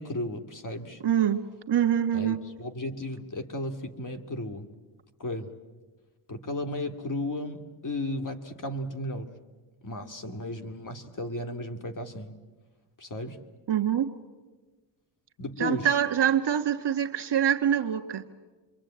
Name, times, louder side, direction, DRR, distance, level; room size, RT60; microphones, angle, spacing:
voice 1, 0.0-1.0 2.1-4.7 5.2-5.6 6.3-9.3 9.8-12.3 13.0-13.4 15.4-16.0, left 1 dB, 40° left, 7 dB, 2.4 m, -34 dB
voice 2, 1.0-1.4 1.7-2.4 13.7-14.1 15.6-18.2, right 10 dB, 55° right, 7 dB, 1.8 m, -25 dB
26.5 x 23.5 x 8.9 m, 1.3 s
cardioid pair, 90°, 49 cm